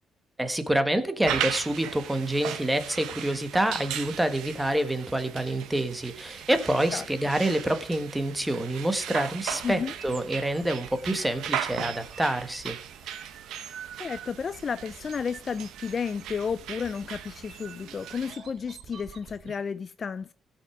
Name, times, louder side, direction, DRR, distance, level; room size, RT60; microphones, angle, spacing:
voice 1, 0.4-12.8, right 1 dB, 10° right, 1.4 m, -27 dB
sound 1, 1.2-18.3, right 9 dB, 85° right, 1.0 m, -38 dB
sound 2, 9.5-19.6, right 7 dB, 65° right, 1.3 m, -47 dB
voice 2, 14.0-20.3, left 6 dB, 45° left, 0.4 m, -32 dB
16.0 x 5.8 x 4.9 m
cardioid pair, 90°, 0 cm